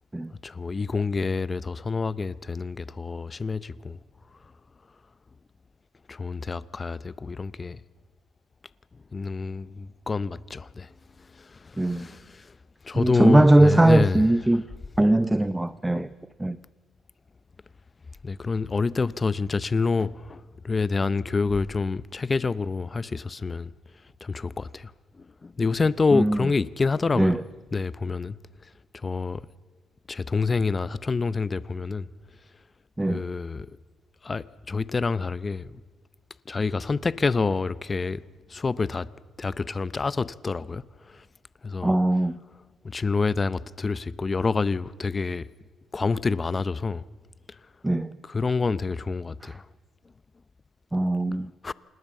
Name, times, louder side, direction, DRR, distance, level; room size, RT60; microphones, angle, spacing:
voice 1, 0.4-4.0 6.1-7.8 9.1-10.9 11.3-12.5 12.8-14.3 18.2-23.7 24.2-24.9 25.2-27.4 27.7-28.4 28.9-29.4 30.1-32.1 33.1-33.7 34.2-35.8 36.5-38.2 38.5-39.1 39.4-41.2 41.6-41.9 42.8-45.5 45.9-47.0 48.2-49.6 51.6-51.7, left 4 dB, 30° left, 0.7 m, -27 dB
voice 2, 11.8-12.1 12.9-14.6 15.0-16.1 16.4-16.6 26.1-26.4 27.2-27.4 33.0-33.2 41.8-42.3 47.8-48.1 50.9-51.5, right 1 dB, 10° right, 0.7 m, -20 dB
27.0 x 19.0 x 7.5 m
cardioid pair, 90°, 0 cm